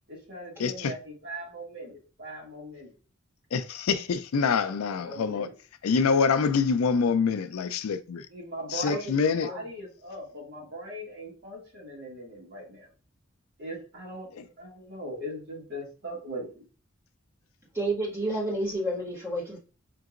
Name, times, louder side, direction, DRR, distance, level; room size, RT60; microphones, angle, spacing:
voice 1, 0.1-2.9 4.6-5.5 8.3-12.9 13.6-16.6, equal, 50° right, 1.9 m, -40 dB
voice 2, 0.6-0.9 3.5-5.5 5.8-8.3 8.7-9.5, left 5 dB, 85° left, 0.4 m, -25 dB
voice 3, 17.7-19.6, right 1 dB, 10° right, 1.6 m, -30 dB
5.2 x 2.9 x 2.4 m
head